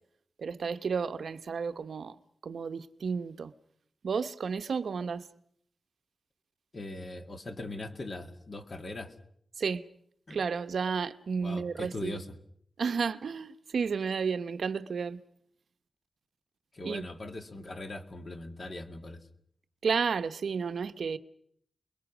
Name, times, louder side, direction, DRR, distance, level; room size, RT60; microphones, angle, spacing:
voice 1, 0.4-2.2 2.4-3.5 4.0-5.2 9.6-9.8 10.3-12.2 12.8-15.2 16.8-17.0 19.8-21.2, right 5 dB, 70° right, 0.9 m, -32 dB
voice 2, 6.7-9.2 10.3-10.4 11.4-12.3 16.7-19.3, left 2 dB, 35° left, 2.2 m, -40 dB
30.0 x 21.5 x 6.1 m
wide cardioid pair, 160°, 0 cm